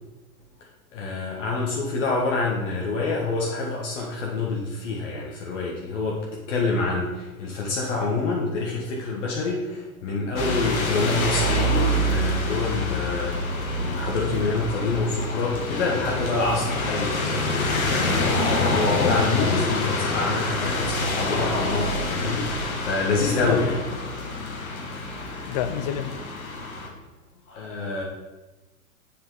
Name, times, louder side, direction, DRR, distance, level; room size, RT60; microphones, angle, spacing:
voice 1, 0.9-13.4 13.8-23.8 27.5-28.0, left 3 dB, 55° left, -2 dB, 1.5 m, -27 dB
sound 1, 10.4-26.9, left 1 dB, 70° left, 1.9 m, -26 dB
voice 2, 25.5-26.2, left 9 dB, 30° left, 12 dB, 0.4 m, -29 dB
7.6 x 6.9 x 3.8 m, 1.1 s
figure-of-eight pair, 105°, 43 cm